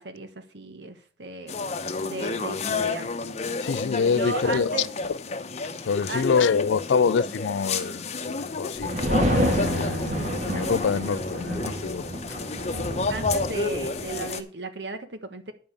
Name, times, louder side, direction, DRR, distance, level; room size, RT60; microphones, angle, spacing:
voice 1, 0.0-1.5 2.0-3.1 4.0-4.9 6.1-6.4 13.1-15.5, right 2 dB, 65° right, 1.5 m, -35 dB
sound 1, 1.5-14.4, left 3 dB, 35° left, 0.9 m, -31 dB
voice 2, 3.6-4.9 5.8-8.1 8.4-8.9 9.3-12.0, left 5 dB, 80° left, 0.4 m, -26 dB
sound 2, 8.8-14.2, right 1 dB, 40° right, 1.7 m, -29 dB
10.0 x 5.4 x 6.7 m
head